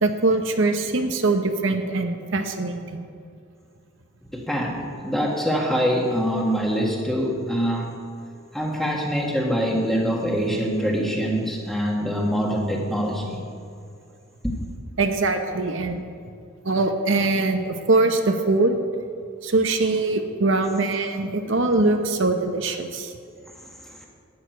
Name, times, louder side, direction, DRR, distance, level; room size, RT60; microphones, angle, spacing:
voice 1, 0.0-3.1 15.0-16.0 16.6-18.8 19.4-23.1, right 3 dB, 60° right, 6 dB, 0.8 m, -22 dB
voice 2, 4.3-7.9 8.5-13.5 14.4-14.5, equal, ahead, -1 dB, 1.5 m, -24 dB
12.0 x 6.5 x 9.2 m, 2.4 s
head